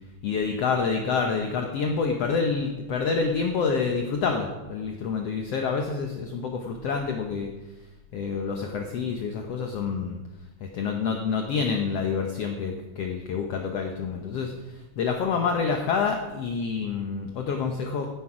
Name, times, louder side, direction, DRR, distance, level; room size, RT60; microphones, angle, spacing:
voice 1, 0.2-7.5 8.1-10.2 10.6-18.1, left 5 dB, 65° left, 3 dB, 1.7 m, -27 dB
15.5 x 10.0 x 5.0 m, 1.1 s
omnidirectional pair, 3.7 m